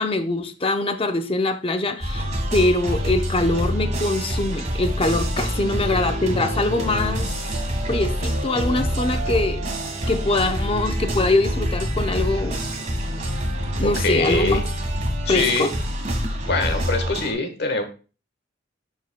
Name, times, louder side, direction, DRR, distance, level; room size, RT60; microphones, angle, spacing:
voice 1, 0.0-2.3 2.5-7.3 7.9-9.7 10.1-12.6 13.8-14.7 15.3-15.7, left 2 dB, 30° left, 0.7 m, -23 dB
sound 1, 2.0-17.3, equal, 40° right, 1.5 m, -26 dB
voice 2, 5.4-5.7 6.0-6.2 13.8-14.6 15.2-15.7 16.5-17.8, left 3 dB, 60° left, 1.3 m, -24 dB
11.0 x 4.5 x 2.2 m
head